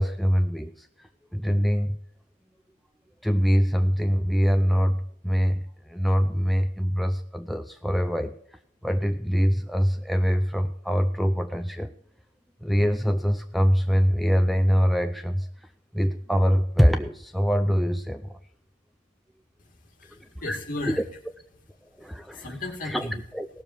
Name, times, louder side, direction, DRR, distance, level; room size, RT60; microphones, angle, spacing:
voice 1, 0.0-2.0 3.2-11.9 12.6-15.7 15.9-18.4 20.1-20.6 22.0-22.5 22.8-23.1 23.3-23.5, equal, ahead, 6 dB, 0.5 m, -24 dB
voice 2, 19.6-21.0 22.0-23.2, left 2 dB, 50° left, 2 dB, 2.5 m, -35 dB
18.0 x 7.0 x 4.5 m, 0.67 s
head